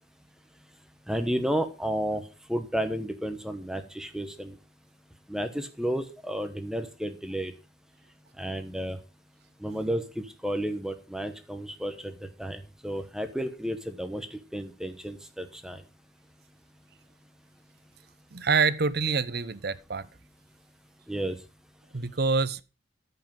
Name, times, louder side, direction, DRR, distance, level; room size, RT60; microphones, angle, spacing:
voice 1, 1.1-2.2 2.5-4.6 5.3-7.5 8.4-9.0 9.6-12.1 12.4-15.8 21.1-21.4, equal, 5° right, 1.0 m, -32 dB
voice 2, 18.3-20.1 21.9-22.6, right 4 dB, 50° right, 0.7 m, -26 dB
14.0 x 5.7 x 5.4 m
head